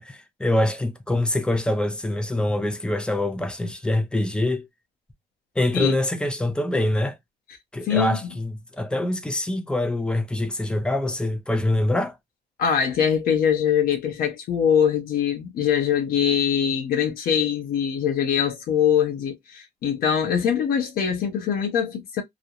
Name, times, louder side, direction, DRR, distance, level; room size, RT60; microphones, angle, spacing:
voice 1, 0.0-4.7 5.6-7.2 7.7-12.2, left 1 dB, 5° left, 0.5 m, -24 dB
voice 2, 7.9-8.2 12.6-22.2, left 8 dB, 60° left, 0.7 m, -23 dB
2.4 x 2.0 x 2.7 m
cardioid pair, 110°, 17 cm